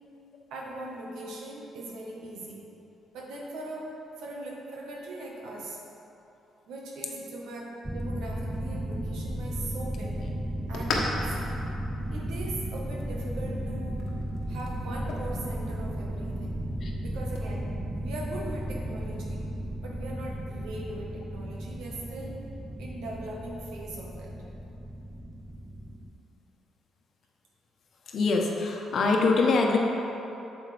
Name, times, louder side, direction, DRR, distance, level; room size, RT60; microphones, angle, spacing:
voice 1, 0.5-2.7 3.1-5.8 6.7-10.2 10.7-11.3 12.1-14.1 14.5-16.6 17.0-17.7 18.0-19.5 19.8-22.4 22.8-24.3, right 1 dB, 85° right, -2 dB, 1.4 m, -40 dB
sound 1, 7.8-26.1, right 1 dB, 10° right, 0.5 m, -35 dB
sound 2, 8.5-17.5, left 3 dB, 85° left, 1.1 m, -40 dB
voice 2, 28.1-29.8, left 3 dB, 60° left, 1 dB, 1.0 m, -24 dB
8.7 x 7.1 x 3.4 m, 2.9 s
cardioid pair, 90°, 0 cm